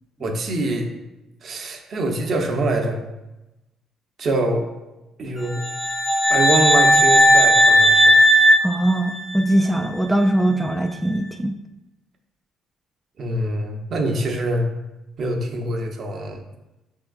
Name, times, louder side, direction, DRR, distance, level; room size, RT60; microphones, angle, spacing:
voice 1, 0.2-0.9 1.4-3.0 4.2-4.6 5.2-5.6 6.3-8.1 13.2-14.7 15.2-16.4, right 2 dB, 55° right, 3 dB, 0.7 m, -24 dB
sound 1, 5.6-9.6, equal, 15° left, 0.7 m, -16 dB
voice 2, 8.6-11.5, right 1 dB, 5° right, 3 dB, 0.3 m, -21 dB
6.1 x 3.6 x 2.4 m, 1.0 s
supercardioid pair, 65°, 0 cm